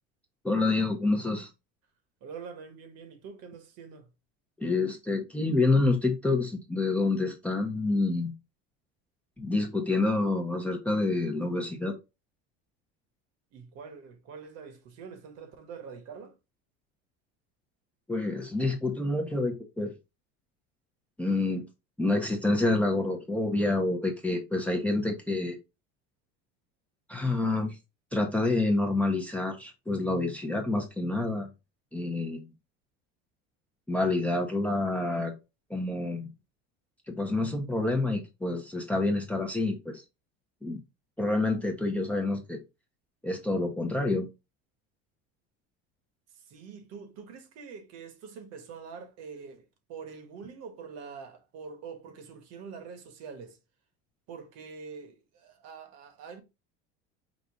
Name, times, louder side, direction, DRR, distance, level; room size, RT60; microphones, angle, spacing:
voice 1, 0.4-1.5 4.6-8.3 9.4-11.9 18.1-19.9 21.2-21.6 22.0-25.6 27.1-27.8 28.1-31.5 31.9-32.5 33.9-35.3 35.7-36.3 37.1-40.0 40.6-40.8 41.2-42.6 43.2-44.3, left 2 dB, 5° left, 0.6 m, -28 dB
voice 2, 2.2-4.1 13.5-16.4 46.3-53.6 54.3-56.4, right 5 dB, 55° right, 1.2 m, -45 dB
5.1 x 2.3 x 3.6 m
cardioid pair, 130°, 30 cm